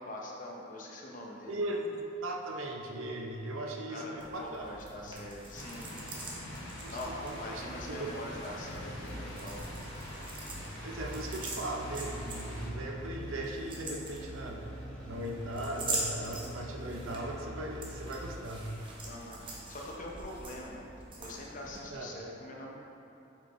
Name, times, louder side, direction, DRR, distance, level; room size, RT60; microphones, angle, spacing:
voice 1, 0.0-1.6 3.9-5.9 6.9-9.7 19.0-20.8 21.2-22.7, left 1 dB, 40° left, -2 dB, 0.8 m, -43 dB
voice 2, 1.5-4.8 5.0-5.2 6.8-7.0 7.2-8.0 10.8-14.7 15.0-18.7 21.9-22.2, right 1 dB, 80° right, 1 dB, 0.7 m, -38 dB
sound 1, 4.2-21.8, right 2 dB, 25° right, 0.8 m, -44 dB
sound 2, 5.5-12.7, left 1 dB, 70° left, 1.5 m, -46 dB
sound 3, 6.5-18.6, equal, 5° left, 0.9 m, -45 dB
6.7 x 5.1 x 3.1 m, 2.8 s
head